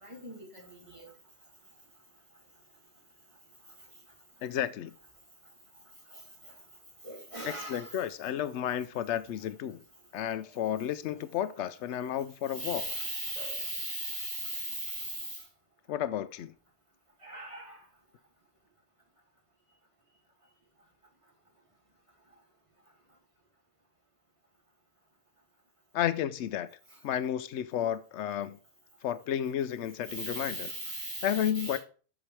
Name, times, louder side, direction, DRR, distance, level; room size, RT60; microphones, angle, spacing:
voice 1, 0.0-1.1 7.0-7.9 12.5-15.4 17.2-17.8 30.1-31.8, right 1 dB, 30° right, 2.3 m, -38 dB
voice 2, 4.4-4.9 7.5-9.8 10.1-12.9 15.9-16.5 25.9-26.7 27.0-28.6 29.0-30.7 31.0-31.8, left 10 dB, 85° left, 0.9 m, -32 dB
7.3 x 6.1 x 3.3 m
omnidirectional pair, 1.1 m